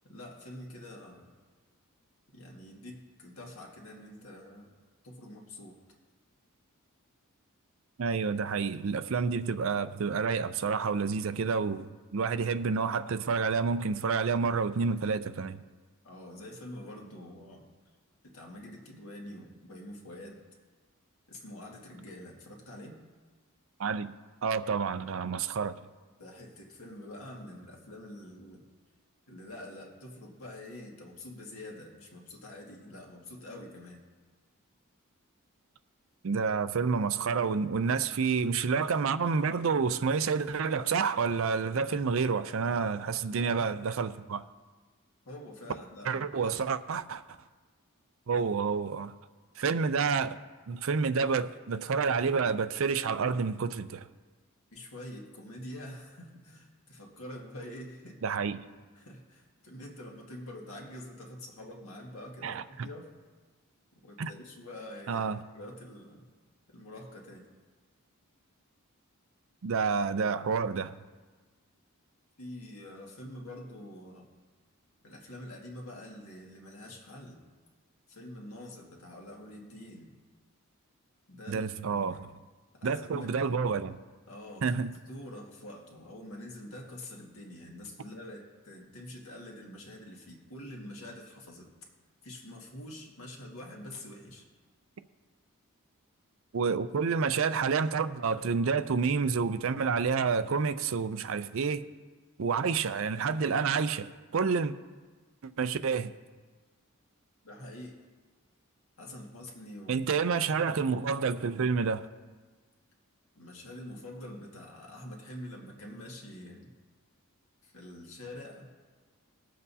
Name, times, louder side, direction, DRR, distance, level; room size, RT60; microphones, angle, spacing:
voice 1, 0.0-1.3 2.3-4.7 5.0-5.8 16.0-17.6 18.2-20.4 21.3-23.0 26.2-28.6 29.3-34.0 42.6-43.9 45.3-46.7 48.3-48.5 54.7-58.2 58.9-63.1 63.9-65.3 65.5-66.2 66.7-67.5 72.4-74.3 75.0-77.4 78.1-80.1 81.3-82.2 82.7-83.6 84.3-91.7 92.2-94.5 107.4-107.9 109.0-110.0 113.4-116.7 117.6-118.7, left 1 dB, 70° left, 1.8 m, -46 dB
voice 2, 8.0-15.6 23.8-24.1 24.4-25.8 36.2-44.4 46.1-47.2 48.3-49.1 49.6-50.4 50.7-54.1 58.2-58.6 62.4-62.9 64.2-64.3 65.1-65.4 69.6-71.0 81.5-82.3 82.8-84.0 84.6-84.9 96.5-101.8 102.4-104.7 105.4-106.1 109.9-112.1, right 5 dB, 60° right, 0.4 m, -29 dB
21.0 x 7.7 x 2.8 m
head